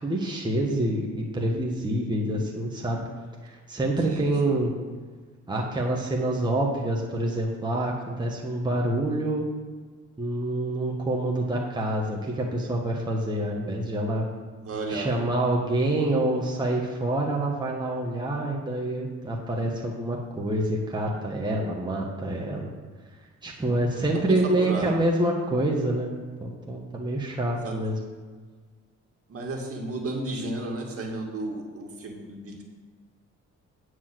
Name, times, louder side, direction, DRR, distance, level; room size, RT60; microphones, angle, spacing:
voice 1, 0.0-3.1 3.4-4.7 5.5-9.5 10.2-14.3 14.9-22.7 23.4-28.0, right 1 dB, 15° right, -2 dB, 1.6 m, -27 dB
voice 2, 4.0-4.6 14.6-15.2 24.1-24.9 27.6-27.7 29.3-32.6, right 2 dB, 50° right, 0 dB, 2.2 m, -33 dB
9.5 x 4.8 x 7.7 m, 1.5 s
cardioid pair, 90°, 30 cm